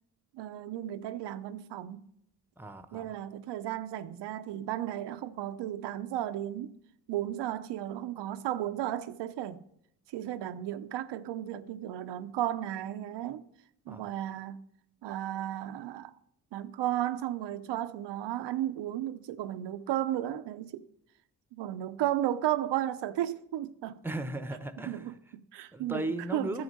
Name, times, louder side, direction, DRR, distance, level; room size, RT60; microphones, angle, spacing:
voice 1, 0.3-2.1 2.9-6.8 7.1-9.6 10.1-13.5 13.9-14.6 15.0-16.1 16.5-20.8 21.5-24.0 24.9-26.6, right 12 dB, 85° right, 0.6 m, -34 dB
voice 2, 2.6-3.2 13.9-14.1 24.0-25.1 25.7-26.6, right 2 dB, 5° right, 0.8 m, -36 dB
9.5 x 7.1 x 5.3 m
cardioid pair, 60°, 41 cm